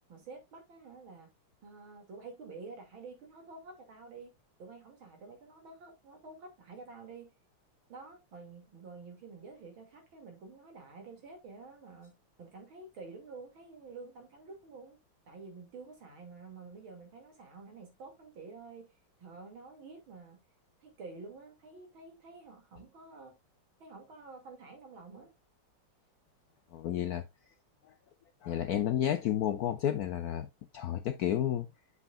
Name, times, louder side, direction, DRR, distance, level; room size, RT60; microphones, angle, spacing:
voice 1, 0.1-1.3 1.6-4.3 4.6-7.3 7.9-15.0 15.3-18.9 19.2-20.4 20.8-23.4 23.8-25.3, right 4 dB, 65° right, 3.3 m, -49 dB
voice 2, 26.7-27.2 28.4-30.5 30.7-31.7, left 11 dB, 80° left, 0.8 m, -31 dB
8.3 x 6.8 x 2.4 m
omnidirectional pair, 2.4 m